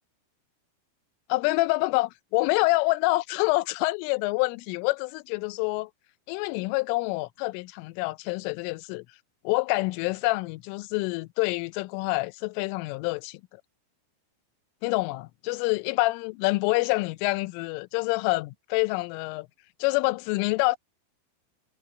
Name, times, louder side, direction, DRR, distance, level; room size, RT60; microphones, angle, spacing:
voice 1, 1.3-5.9 6.3-9.1 9.4-13.4 14.8-19.5 19.8-20.8, left 23 dB, 80° left, 3.1 m, -27 dB
omnidirectional pair, 5.9 m